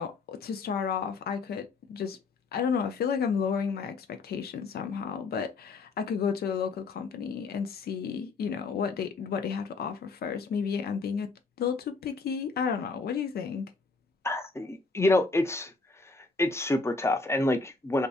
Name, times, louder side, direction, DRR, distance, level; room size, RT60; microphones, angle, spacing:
voice 1, 0.0-2.2 2.5-11.3 11.6-13.7, left 6 dB, 85° left, 0.4 m, -32 dB
voice 2, 14.2-15.7 16.4-18.1, left 2 dB, 15° left, 0.5 m, -26 dB
2.7 x 2.2 x 2.4 m
cardioid pair, 55°, 16 cm